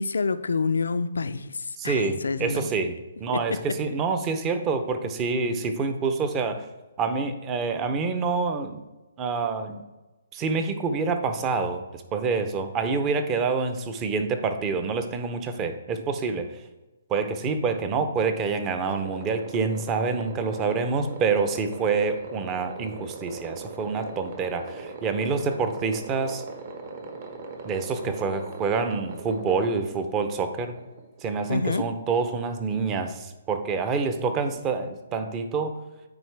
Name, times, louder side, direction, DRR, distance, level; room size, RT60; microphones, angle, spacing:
voice 1, 0.0-2.7 3.3-3.6 31.5-31.9, left 4 dB, 85° left, 0.4 m, -27 dB
voice 2, 1.8-2.9 3.2-6.6 7.0-8.8 9.2-9.8 10.3-16.5 17.1-26.4 27.6-30.7 31.2-35.7, right 4 dB, 20° right, 0.6 m, -27 dB
sound 1, 18.9-31.5, right 3 dB, 45° right, 1.1 m, -40 dB
9.5 x 4.4 x 3.4 m
hypercardioid pair, 155°, 0 cm